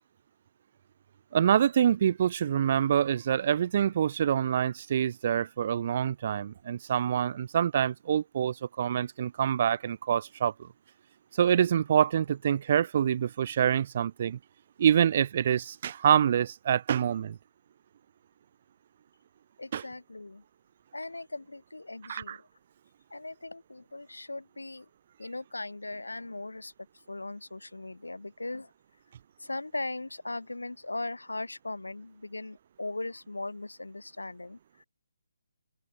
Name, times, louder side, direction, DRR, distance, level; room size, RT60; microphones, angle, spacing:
voice 1, 1.3-10.7 11.4-14.4 14.8-17.4 19.7-19.8 22.1-22.4, right 9 dB, 40° right, 0.4 m, -26 dB
voice 2, 19.6-20.4 20.9-22.5 23.1-24.9 25.2-26.7 27.1-28.7 29.4-34.9, left 2 dB, 75° left, 2.0 m, -39 dB
open air
figure-of-eight pair, 140°, 0 cm